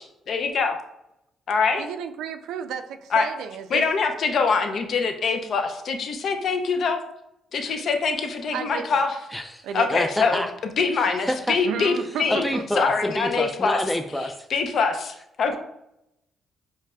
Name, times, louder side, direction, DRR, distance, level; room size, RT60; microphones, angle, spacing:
voice 1, 0.3-0.8 1.5-1.8 3.1-3.3 3.7-7.0 7.5-9.2 9.7-12.5 12.8-13.8 14.2-15.6, left 5 dB, 60° left, 5 dB, 0.5 m, -24 dB
voice 2, 1.8-3.8 8.5-9.0 9.6-10.0 11.6-12.6 13.2-13.4, right 8 dB, 85° right, 8 dB, 0.3 m, -33 dB
voice 3, 9.3-9.6 9.9-10.5 10.9-11.5 12.3-14.5, equal, 5° left, 4 dB, 0.3 m, -28 dB
4.8 x 3.1 x 2.2 m, 0.80 s
cardioid pair, 90°, 0 cm